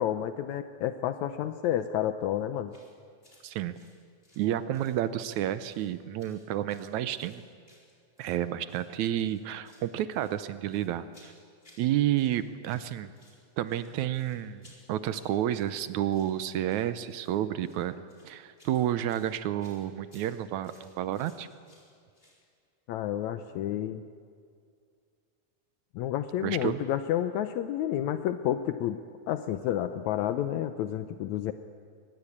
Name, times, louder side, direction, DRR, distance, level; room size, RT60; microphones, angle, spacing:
voice 1, 0.0-2.7 22.9-24.1 26.0-29.0 29.3-31.5, left 11 dB, 75° left, 10 dB, 2.0 m, -30 dB
sound 1, 2.7-2.9 3.2-3.4 3.7-5.0 5.2-5.9 6.2-8.4 8.7-8.9 9.2-9.9 10.1-11.9 12.1-12.9 13.1-22.4, left 1 dB, 15° left, 4.3 m, -61 dB
voice 2, 3.4-3.8 4.4-7.4 8.2-11.3 11.8-13.1 13.6-21.5 26.4-26.8, right 12 dB, 75° right, 13 dB, 2.1 m, -30 dB
23.0 x 20.5 x 8.7 m, 2.2 s
omnidirectional pair, 3.5 m